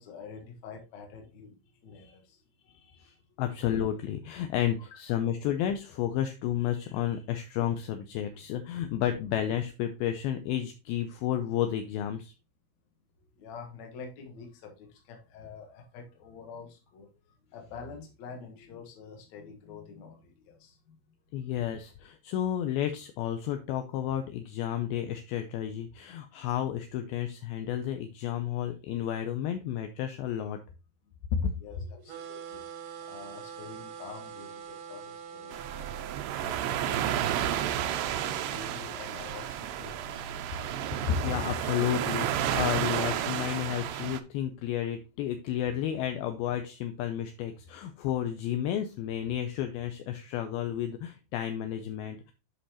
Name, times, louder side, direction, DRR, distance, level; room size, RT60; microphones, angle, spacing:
voice 1, 0.0-1.6 1.8-2.4 4.9-5.0 13.3-21.0 31.6-32.7 33.0-37.7 38.2-40.7, left 5 dB, 55° left, 2 dB, 2.2 m, -47 dB
voice 2, 2.7-12.3 21.3-30.6 31.3-31.5 35.5-35.7 41.0-52.3, left 10 dB, 80° left, 6 dB, 2.3 m, -32 dB
sound 1, 32.1-36.2, right 7 dB, 70° right, 1.6 m, -43 dB
sound 2, 35.5-44.2, right 10 dB, 90° right, 2.0 m, -31 dB
10.0 x 5.5 x 2.9 m, 0.29 s
omnidirectional pair, 4.9 m